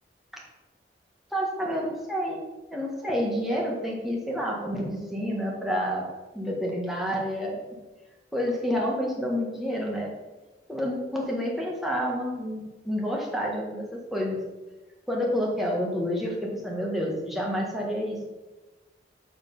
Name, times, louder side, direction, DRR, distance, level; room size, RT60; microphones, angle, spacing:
voice 1, 1.3-2.4 2.7-6.1 6.3-7.6 8.3-10.1 10.7-14.4 15.1-18.3, equal, ahead, -3 dB, 1.6 m, -29 dB
7.2 x 5.0 x 5.5 m, 1.1 s
head